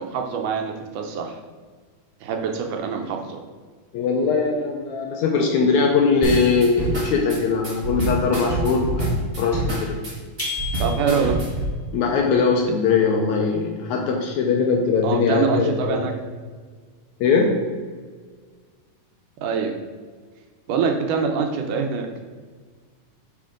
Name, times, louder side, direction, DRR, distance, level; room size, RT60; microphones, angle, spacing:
voice 1, 0.0-1.4 2.2-3.4 10.8-11.4 15.0-16.1 19.4-19.7 20.7-22.1, right 6 dB, 75° right, 3 dB, 2.1 m, -24 dB
voice 2, 3.9-10.0 11.9-16.1 17.2-17.7, left 4 dB, 75° left, 1 dB, 1.8 m, -21 dB
sound 1, 6.2-11.7, right 1 dB, 50° right, 0.6 m, -26 dB
sound 2, 10.4-11.5, left 4 dB, 25° left, 0.4 m, -31 dB
8.6 x 4.3 x 3.8 m, 1.5 s
omnidirectional pair, 3.9 m